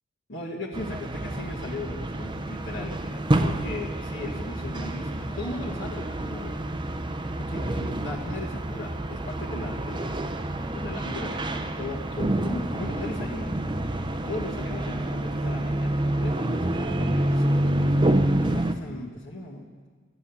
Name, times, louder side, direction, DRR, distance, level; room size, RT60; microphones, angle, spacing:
voice 1, 0.3-6.6 7.4-10.3 10.7-13.5 14.2-19.7, left 2 dB, 65° left, -6 dB, 1.7 m, -37 dB
sound 1, 0.7-18.7, right 1 dB, 25° right, 0.6 m, -28 dB
13.0 x 9.8 x 7.1 m, 1.5 s
head